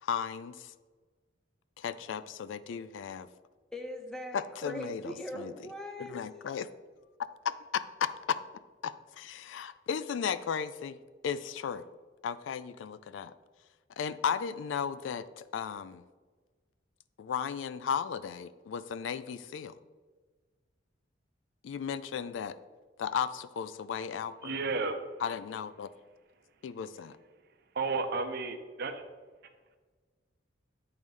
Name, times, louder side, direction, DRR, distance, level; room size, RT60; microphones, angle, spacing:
voice 1, 0.0-0.7 1.8-3.3 4.3-5.5 6.0-6.7 7.4-8.4 8.8-11.8 12.2-13.4 14.0-16.0 17.2-19.8 21.6-22.6 23.0-24.5 25.2-25.9 26.6-27.2, left 7 dB, 80° left, 14 dB, 0.3 m, -35 dB
voice 2, 3.7-6.2, equal, 5° left, 3 dB, 0.8 m, -41 dB
voice 3, 24.4-25.0 27.7-29.0, right 3 dB, 60° right, 7 dB, 0.7 m, -32 dB
9.0 x 3.2 x 5.3 m, 1.4 s
head